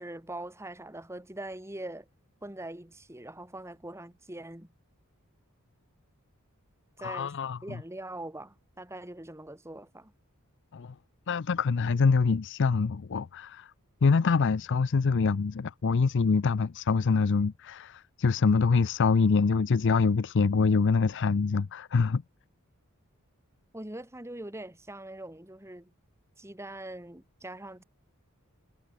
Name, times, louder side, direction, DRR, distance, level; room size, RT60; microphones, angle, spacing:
voice 1, 0.0-2.1 2.4-4.7 7.0-7.3 7.6-10.1 23.7-25.9 26.4-27.8, right 1 dB, 10° right, 2.3 m, -42 dB
voice 2, 7.0-7.6 10.7-10.9 11.3-13.7 14.0-22.2, left 4 dB, 55° left, 0.5 m, -25 dB
head